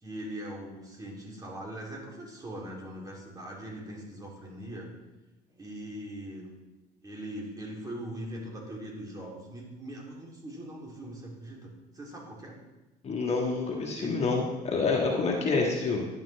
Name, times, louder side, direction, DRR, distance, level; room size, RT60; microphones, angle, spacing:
voice 1, 0.0-4.9 5.5-6.5 7.0-12.6 14.0-14.1, right 1 dB, 20° right, -2 dB, 3.4 m, -41 dB
voice 2, 13.0-16.1, left 4 dB, 35° left, -1 dB, 1.7 m, -27 dB
10.5 x 9.0 x 3.5 m, 1.1 s
supercardioid pair, 90°, 18 cm